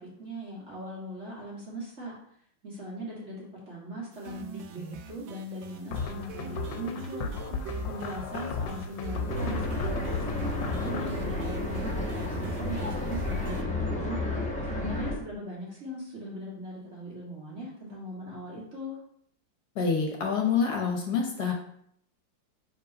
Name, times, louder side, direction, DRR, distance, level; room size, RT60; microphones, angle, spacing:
voice 1, 0.0-2.1 2.6-7.3 7.9-14.2 14.6-19.0, right 1 dB, 40° right, -5 dB, 2.3 m, -40 dB
sound 1, 4.1-13.6, right 4 dB, 80° right, 1.4 m, -42 dB
sound 2, 5.9-11.1, left 6 dB, 75° left, 1.3 m, -35 dB
sound 3, 9.3-15.2, left 2 dB, 5° left, 0.6 m, -31 dB
voice 2, 19.7-21.5, left 5 dB, 60° left, 1 dB, 1.4 m, -27 dB
5.2 x 4.0 x 5.3 m, 0.67 s
omnidirectional pair, 2.1 m